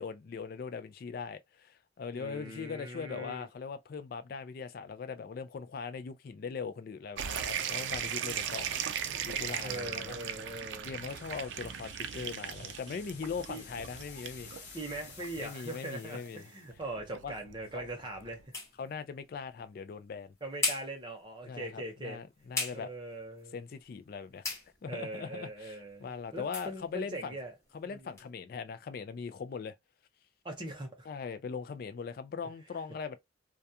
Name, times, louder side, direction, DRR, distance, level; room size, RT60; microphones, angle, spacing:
voice 1, 0.0-8.7 9.2-10.2 10.8-14.5 15.4-16.4 17.2-17.3 17.7-17.9 18.8-20.3 21.5-22.9 23.5-27.3 27.7-29.8 31.1-33.2, left 5 dB, 55° left, 0.3 m, -40 dB
voice 2, 2.1-3.5 9.6-11.0 13.5-13.7 14.7-18.5 20.4-22.2 22.7-23.5 24.9-27.5 27.8-28.2 30.4-31.1, right 2 dB, 25° right, 0.8 m, -41 dB
sound 1, 7.2-18.4, right 8 dB, 85° right, 0.4 m, -39 dB
sound 2, 11.1-16.7, left 5 dB, 70° left, 0.9 m, -52 dB
sound 3, 16.8-28.3, left 3 dB, 15° left, 1.0 m, -42 dB
2.3 x 2.2 x 2.8 m
head